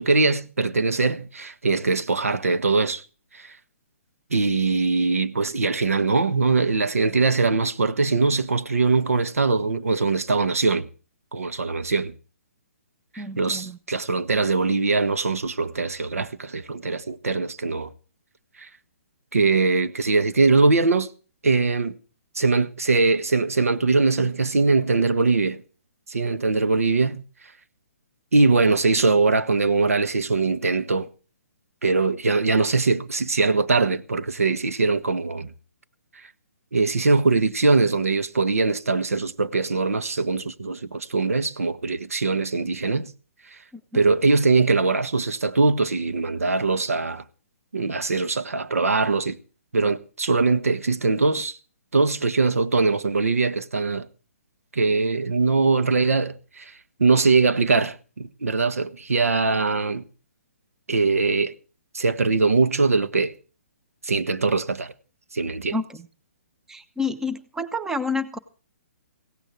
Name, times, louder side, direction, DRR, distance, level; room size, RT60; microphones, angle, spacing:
voice 1, 0.0-3.0 3.3-3.6 4.3-10.9 11.3-12.1 13.1-17.9 18.6-18.7 19.3-21.1 21.4-21.9 22.3-25.6 26.1-27.2 28.3-31.1 31.8-35.5 36.7-43.1 43.9-47.2 47.7-49.4 49.7-51.6 51.9-54.1 54.7-56.7 57.0-60.0 60.9-61.5 61.9-63.3 64.0-64.9 65.3-65.8, right 3 dB, 80° right, 1.5 m, -22 dB
voice 2, 13.2-13.8 43.9-44.0 65.7-66.1 66.7-68.4, left 3 dB, 5° right, 1.0 m, -29 dB
16.5 x 15.0 x 4.6 m
hypercardioid pair, 135°, 8 cm